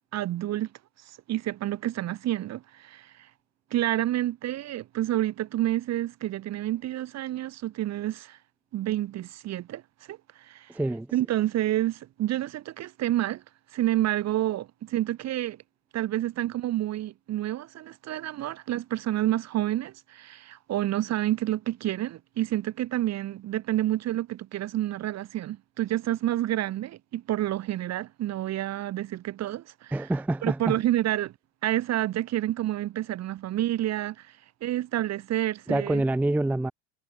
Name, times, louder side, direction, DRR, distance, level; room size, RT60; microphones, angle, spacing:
voice 1, 0.1-0.7 1.3-3.3 3.7-8.4 8.7-9.8 10.1-10.7 11.1-13.4 13.7-15.6 15.9-30.1 30.4-31.3 31.6-34.3 34.6-36.0, right 14 dB, 35° right, 0.8 m, -29 dB
voice 2, 10.7-11.1 29.9-30.8 35.7-36.7, right 2 dB, 5° right, 0.5 m, -26 dB
cardioid pair, 145°, 47 cm